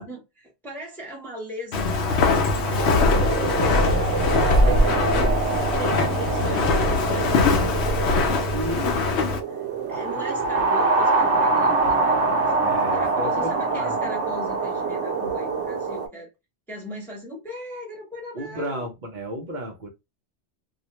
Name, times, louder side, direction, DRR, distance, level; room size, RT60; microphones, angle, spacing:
voice 1, 0.0-3.8 4.4-16.3 16.7-18.9, left 1 dB, ahead, 0.8 m, -39 dB
Walk footsteps, 1.7-9.4, left 3 dB, 75° left, 0.9 m, -21 dB
sound 1, 2.0-16.1, right 3 dB, 75° right, 1.0 m, -25 dB
voice 2, 2.6-4.1 4.5-5.1 8.5-9.0 12.6-14.0 18.3-19.9, equal, 50° right, 0.7 m, -34 dB
2.4 x 2.1 x 2.8 m
omnidirectional pair, 1.2 m